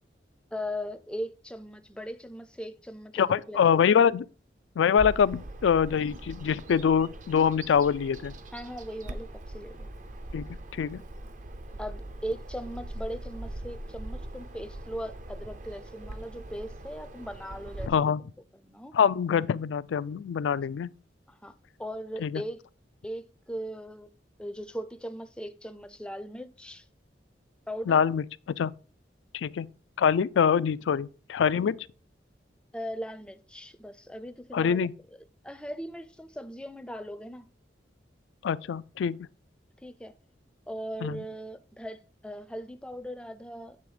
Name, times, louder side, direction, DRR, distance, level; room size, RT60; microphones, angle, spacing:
voice 1, 0.5-3.6 8.5-9.9 11.8-18.1 18.5-19.0 21.3-21.5 21.8-22.6 23.0-24.1 24.4-26.9 27.7-28.0 32.7-34.8 35.4-37.5 39.8-40.1 40.7-43.8, equal, 5° left, 0.4 m, -39 dB
voice 2, 3.1-4.3 4.8-8.3 10.3-10.5 10.7-11.0 17.9-18.2 18.9-20.9 22.2-22.4 27.9-28.2 28.6-28.7 29.3-29.7 30.0-31.8 34.5-34.9 38.4-39.2 41.0-41.2, left 7 dB, 90° left, 0.3 m, -24 dB
Bird vocalization bird call bird song, 5.0-17.9, right 1 dB, 45° right, 0.6 m, -41 dB
8.6 x 3.5 x 4.9 m
head